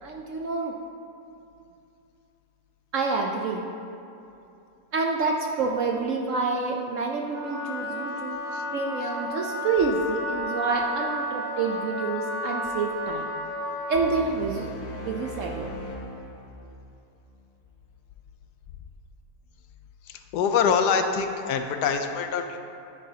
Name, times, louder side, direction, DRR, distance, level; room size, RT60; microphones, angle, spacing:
voice 1, 0.0-0.7 2.9-3.6 4.9-8.4 8.7-13.3 13.9-14.7 15.0-15.7, right 4 dB, 65° right, 1 dB, 0.8 m, -28 dB
Wind instrument woodwind instrument, 7.2-14.3, left 1 dB, 15° left, 1.8 m, -32 dB
sound 1, 13.9-17.3, equal, 45° left, 0.7 m, -39 dB
voice 2, 20.3-22.6, left 6 dB, 80° left, 6 dB, 1.1 m, -24 dB
9.5 x 9.3 x 2.8 m, 2.7 s
omnidirectional pair, 1.8 m